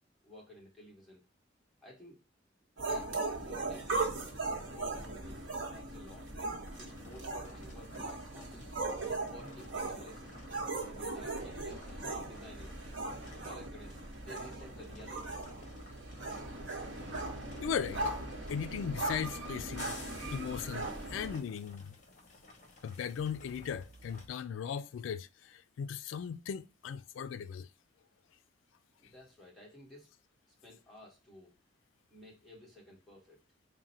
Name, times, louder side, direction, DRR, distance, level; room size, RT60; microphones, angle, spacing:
voice 1, 0.2-1.3 1.8-2.2 2.6-4.2 4.7-6.3 6.8-8.7 9.2-10.3 10.9-12.8 13.3-15.3 29.0-30.1 30.6-31.5 32.1-33.4, left 1 dB, ahead, 1.4 m, -54 dB
sound 1, 2.8-21.4, right 2 dB, 85° right, 1.1 m, -39 dB
sound 2, 6.1-24.3, left 1 dB, 40° left, 0.8 m, -54 dB
voice 2, 17.6-18.0 18.5-20.0 20.3-21.9 22.8-27.7, left 7 dB, 75° left, 0.3 m, -38 dB
3.7 x 2.2 x 4.1 m
head